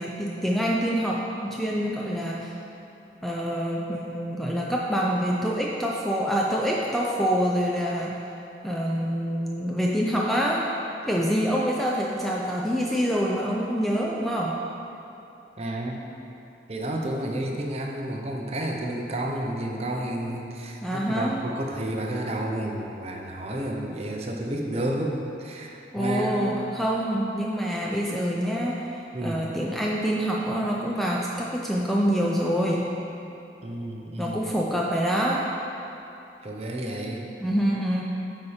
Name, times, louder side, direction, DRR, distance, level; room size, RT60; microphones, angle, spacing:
voice 1, 0.0-2.5 3.2-8.2 8.6-10.7 11.1-14.6 20.8-21.4 25.9-32.9 34.2-35.5 37.4-38.0, equal, ahead, -3 dB, 0.4 m, -26 dB
voice 2, 15.6-16.0 16.7-26.4 29.1-29.4 33.6-34.5 36.4-37.3, right 1 dB, 35° right, 0 dB, 0.7 m, -31 dB
9.0 x 4.2 x 5.0 m, 2.8 s
head